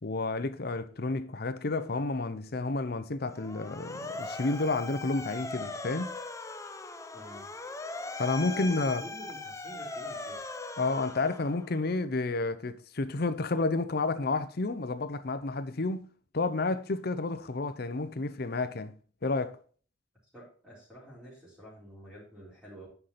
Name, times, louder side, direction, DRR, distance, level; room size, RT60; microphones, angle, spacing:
voice 1, 0.0-6.1 8.2-9.0 10.8-18.9 19.2-19.6, left 3 dB, 55° left, 0.7 m, -31 dB
Motor vehicle (road) / Siren, 3.3-11.9, left 3 dB, 15° left, 0.6 m, -40 dB
voice 2, 7.1-7.5 8.5-10.5 20.3-22.9, equal, 5° right, 3.7 m, -48 dB
9.6 x 5.7 x 4.2 m
head